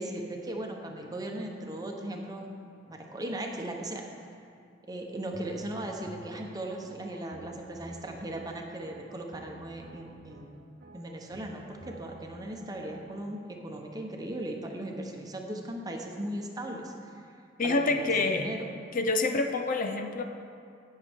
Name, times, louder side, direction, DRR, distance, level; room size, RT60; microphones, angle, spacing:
voice 1, 0.0-2.5 2.9-4.0 4.9-10.6 10.9-17.3 17.6-18.7, right 1 dB, 20° right, 1 dB, 0.9 m, -38 dB
sound 1, 5.3-13.2, right 2 dB, 55° right, 0.8 m, -51 dB
voice 2, 17.6-18.5 18.9-20.2, left 3 dB, 45° left, 6 dB, 0.5 m, -27 dB
17.0 x 6.5 x 3.6 m, 2.4 s
head